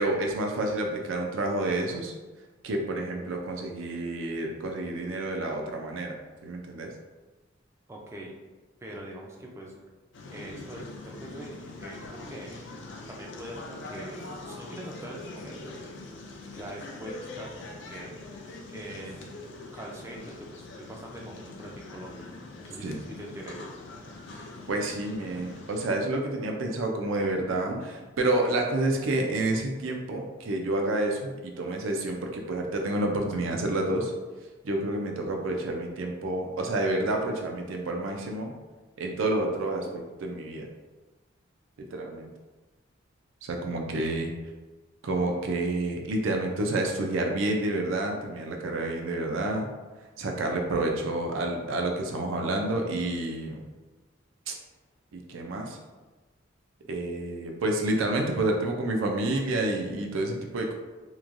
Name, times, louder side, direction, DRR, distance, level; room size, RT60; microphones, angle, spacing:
voice 1, 0.0-2.1 2.6-6.2 6.4-6.9 22.8-23.0 24.7-34.1 34.6-38.5 39.0-40.7 41.9-42.3 43.4-44.3 45.0-49.7 50.2-53.6 54.5-54.6 55.1-55.8 56.9-60.8, right 2 dB, 85° right, 2 dB, 0.4 m, -29 dB
voice 2, 7.9-8.3 8.8-9.8 10.3-11.5 11.8-12.5 13.1-15.8 16.5-18.5 18.7-19.4 19.7-23.7, right 1 dB, 15° right, -2 dB, 0.3 m, -43 dB
sound 1, 10.1-25.9, left 2 dB, 65° left, 0.4 m, -43 dB
3.0 x 2.2 x 2.5 m, 1.2 s
head